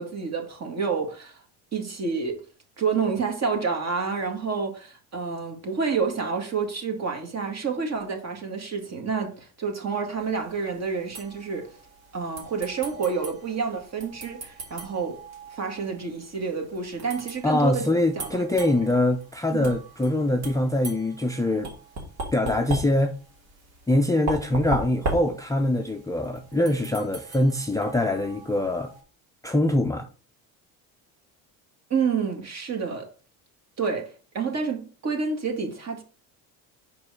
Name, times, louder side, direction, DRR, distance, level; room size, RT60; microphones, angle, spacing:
voice 1, 0.0-1.4 1.7-2.4 2.8-11.7 12.1-15.2 15.5-17.9 18.2-18.4 19.5-19.7 31.9-33.1 33.8-36.0, right 5 dB, 40° right, 2.0 m, -29 dB
sound 1, 10.2-29.0, right 2 dB, 60° right, 2.9 m, -39 dB
voice 2, 17.4-21.7 22.3-23.2 23.9-28.9 29.4-30.1, left 1 dB, 10° left, 0.5 m, -23 dB
5.3 x 4.8 x 4.8 m
supercardioid pair, 105°, 41 cm